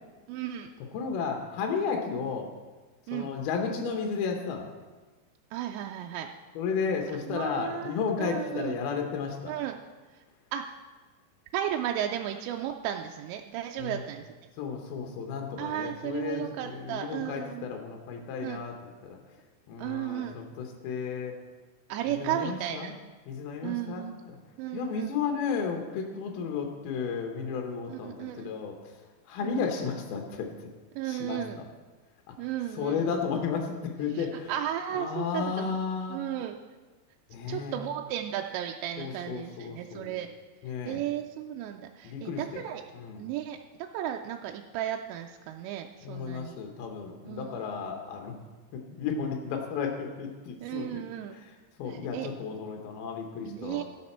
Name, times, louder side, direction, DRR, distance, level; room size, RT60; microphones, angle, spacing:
voice 1, 0.3-0.7 3.1-3.3 5.5-6.3 7.3-8.8 9.5-9.8 10.1-10.2 10.5-10.6 11.5-14.3 15.6-17.7 18.4-18.6 19.8-20.4 21.9-22.9 23.6-24.2 24.6-25.2 27.9-28.5 29.4-29.7 30.9-31.6 32.4-33.1 34.1-35.7 36.1-36.6 37.5-40.3 40.8-42.8 43.2-46.6 47.3-47.6 50.6-51.4 51.9-52.3 53.5-53.8, right 11 dB, 85° right, 3 dB, 2.8 m, -34 dB
voice 2, 0.9-2.5 3.1-4.7 6.6-9.5 13.8-14.0 14.6-18.7 19.0-19.2 19.7-21.4 22.2-22.9 23.3-24.4 24.7-28.9 29.3-30.7 31.0-31.6 32.3-32.4 32.7-34.5 34.9-36.2 37.3-37.8 39.0-40.1 40.6-41.0 42.0-42.6 42.9-43.2 46.0-48.3 48.7-51.0 51.8-53.8, left 6 dB, 70° left, 2 dB, 2.7 m, -33 dB
16.5 x 6.6 x 4.3 m, 1.3 s
omnidirectional pair, 5.0 m